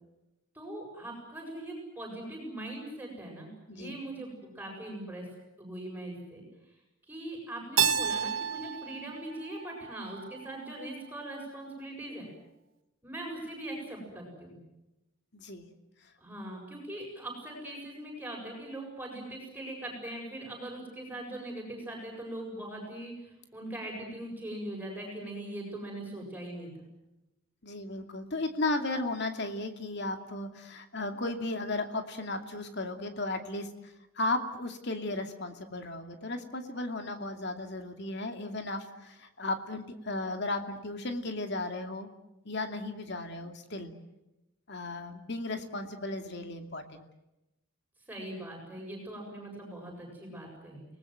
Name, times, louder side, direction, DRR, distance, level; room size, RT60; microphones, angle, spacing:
voice 1, 0.5-5.3 5.6-6.4 7.1-12.3 13.0-14.6 16.2-26.9 48.1-50.9, right 1 dB, 10° right, 0 dB, 7.5 m, -41 dB
Keyboard (musical), 7.8-10.6, right 7 dB, 65° right, 1.3 m, -31 dB
voice 2, 15.3-15.7 27.6-42.1 42.4-43.9 44.7-47.1, left 2 dB, 55° left, 6 dB, 2.5 m, -35 dB
30.0 x 19.5 x 7.9 m, 0.95 s
head